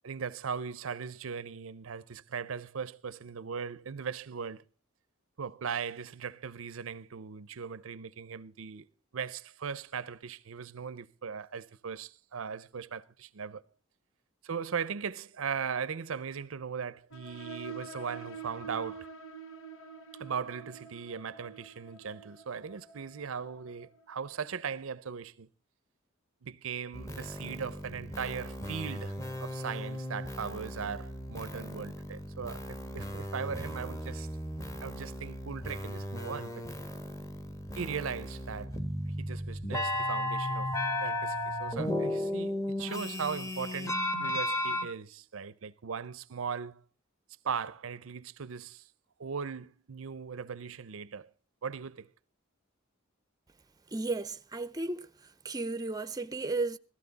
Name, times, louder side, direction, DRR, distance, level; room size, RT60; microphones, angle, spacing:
voice 1, 0.0-4.6 5.4-8.9 9.1-13.6 14.4-19.1 20.2-25.5 26.4-29.1 29.4-34.3 34.8-36.6 37.8-38.8 39.2-40.7 41.0-46.8 47.4-48.9 49.2-51.3 51.6-52.1, right 6 dB, 75° right, 0.6 m, -38 dB
sound 1, 17.1-24.4, right 5 dB, 75° left, 1.5 m, -47 dB
sound 2, 26.9-44.9, left 1 dB, 15° left, 1.3 m, -35 dB
voice 2, 53.9-55.1 55.4-56.8, right 3 dB, 20° right, 0.6 m, -34 dB
16.0 x 14.5 x 4.0 m
head